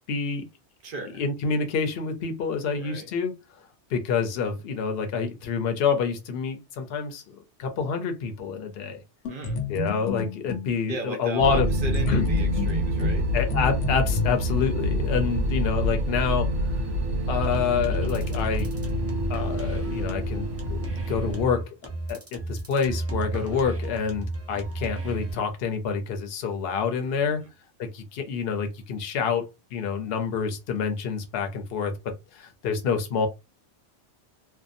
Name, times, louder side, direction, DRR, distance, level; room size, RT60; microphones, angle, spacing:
voice 1, 0.1-0.4 1.0-3.4 3.9-9.0 9.7-11.7 12.1-12.3 13.3-16.5 17.3-18.7 19.3-20.8 21.1-21.6 22.1-27.4 27.8-33.3, left 6 dB, 65° left, 0.8 m, -27 dB
voice 2, 0.8-1.2 2.7-3.1 9.3-9.6 10.9-13.3 27.0-27.5, right 3 dB, 55° right, 0.8 m, -36 dB
sound 1, 9.2-10.7 11.9-14.2, left 2 dB, 85° left, 1.0 m, -31 dB
sound 2, 11.4-21.4, equal, 90° right, 0.9 m, -27 dB
sound 3, 17.3-25.3, right 2 dB, 25° right, 0.3 m, -33 dB
2.6 x 2.2 x 2.5 m
omnidirectional pair, 1.2 m